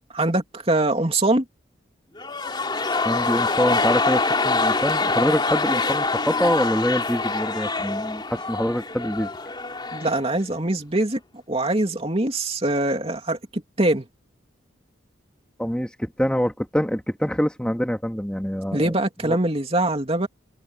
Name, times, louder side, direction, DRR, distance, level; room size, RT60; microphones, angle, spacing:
voice 1, 0.1-1.4 9.9-11.2 11.5-14.1 18.7-20.3, right 2 dB, 30° right, 2.9 m, -23 dB
sound 1, 2.2-10.3 10.5-10.6, left 3 dB, 25° left, 3.3 m, -25 dB
voice 2, 3.1-9.3 15.6-19.0 19.2-19.4, equal, 5° left, 2.0 m, -25 dB
head